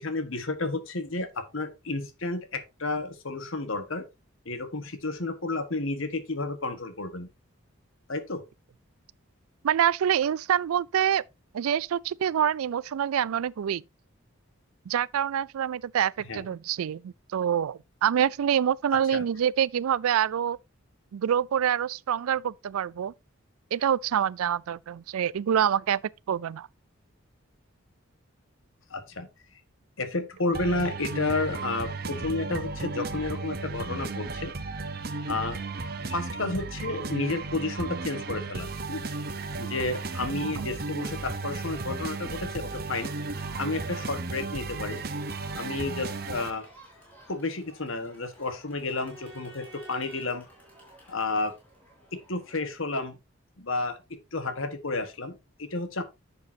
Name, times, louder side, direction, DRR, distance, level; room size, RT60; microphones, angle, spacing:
voice 1, 0.0-4.0 4.4-7.3 8.1-8.4 16.3-16.4 19.1-19.2 28.9-29.3 30.0-34.5 35.3-35.6 36.1-39.1 39.6-43.1 43.6-45.0 45.5-46.7 47.3-50.4 51.1-51.5 52.1-53.2 53.6-54.0 54.3-56.0, left 3 dB, 70° left, 1.4 m, -31 dB
voice 2, 9.6-11.2 11.5-13.8 14.9-20.6 21.1-23.1 23.7-26.0 26.3-26.7 40.3-40.7, right 9 dB, 90° right, 0.4 m, -26 dB
sound 1, 30.5-46.5, right 3 dB, 45° right, 0.9 m, -34 dB
Crowd, 35.5-52.6, equal, 10° left, 4.3 m, -53 dB
10.5 x 7.0 x 2.8 m
head